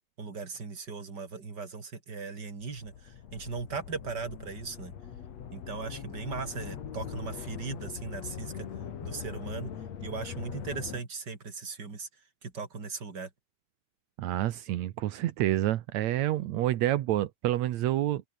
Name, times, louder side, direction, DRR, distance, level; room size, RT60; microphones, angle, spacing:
voice 1, 0.2-4.9 5.5-8.7 9.0-9.7 10.0-12.1 12.4-13.3, right 4 dB, 30° right, 3.6 m, -38 dB
sound 1, 2.6-11.0, left 8 dB, 50° left, 2.9 m, -41 dB
voice 2, 14.2-18.2, right 14 dB, 75° right, 1.7 m, -28 dB
open air
omnidirectional pair, 4.4 m